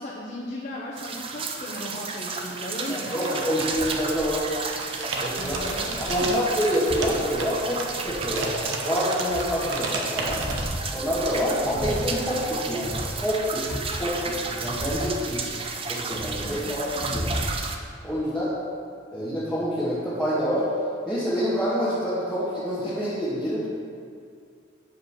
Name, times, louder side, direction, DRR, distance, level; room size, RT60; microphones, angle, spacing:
voice 1, 0.0-3.5 5.4-6.4 16.4-17.1, left 1 dB, 40° left, -5 dB, 0.9 m, -36 dB
sound 1, 1.0-17.8, right 4 dB, 30° right, 0.5 m, -33 dB
voice 2, 2.9-4.6 5.1-5.6 6.0-8.5 8.8-10.4 10.9-15.5 15.9-17.3 18.0-18.5 19.1-20.7 21.1-23.7, equal, ahead, -12 dB, 1.6 m, -27 dB
sound 2, 3.1-4.3 4.5-10.6, right 3 dB, 90° right, 1.0 m, -33 dB
sound 3, 3.7-4.5 5.0-8.7 9.1-9.7 10.1-15.7 16.0-17.7, equal, 80° left, 1.2 m, -35 dB
8.3 x 5.2 x 5.8 m, 2.3 s
head